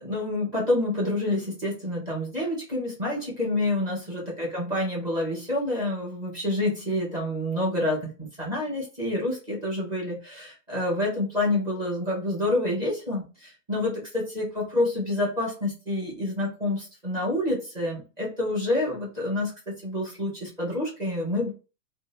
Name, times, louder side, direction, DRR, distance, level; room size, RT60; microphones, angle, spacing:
voice 1, 0.0-21.5, left 1 dB, 10° right, -4 dB, 0.5 m, -28 dB
2.6 x 2.4 x 3.1 m, 0.32 s
hypercardioid pair, 145°, 49 cm